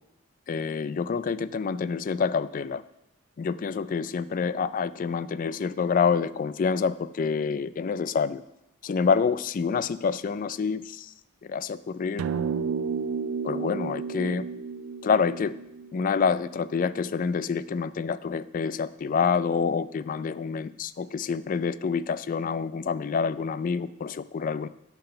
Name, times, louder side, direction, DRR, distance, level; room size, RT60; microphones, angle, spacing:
voice 1, 0.5-2.8 3.4-8.4 8.8-11.1 11.5-12.2 13.4-14.5 15.0-15.5 15.9-24.7, left 5 dB, 40° left, 16 dB, 0.3 m, -27 dB
sound 1, 12.2-16.7, right 5 dB, 80° right, 0.4 m, -32 dB
10.0 x 5.9 x 5.7 m, 0.90 s
head